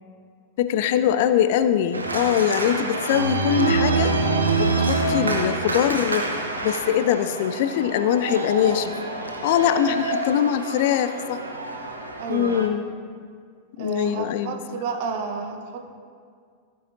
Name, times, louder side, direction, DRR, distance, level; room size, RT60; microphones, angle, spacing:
voice 1, 0.6-4.1 4.6-6.3 6.6-8.9 9.4-11.4 12.3-12.8 13.8-14.6, left 10 dB, 50° left, 11 dB, 0.5 m, -22 dB
Organ, 1.9-12.7, right 3 dB, 80° right, 0.9 m, -26 dB
voice 2, 12.2-12.7 13.8-15.8, right 5 dB, 50° right, 5 dB, 1.0 m, -31 dB
15.5 x 9.0 x 2.6 m, 2.1 s
figure-of-eight pair, 90°, 0 cm